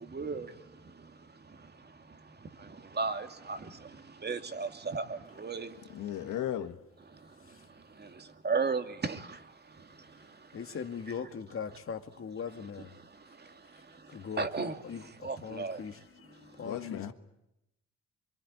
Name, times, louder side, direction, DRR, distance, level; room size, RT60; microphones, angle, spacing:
voice 1, 0.1-0.5 3.0-3.6 4.2-5.0 5.4-5.7 8.4-9.2 14.4-14.8 15.2-15.8, right 4 dB, 35° right, 2.4 m, -32 dB
voice 2, 5.9-6.8 16.6-17.1, left 11 dB, 85° left, 1.9 m, -35 dB
voice 3, 10.5-13.0 14.1-17.1, left 6 dB, 45° left, 2.2 m, -40 dB
25.0 x 23.0 x 9.6 m
cardioid pair, 90°, 30 cm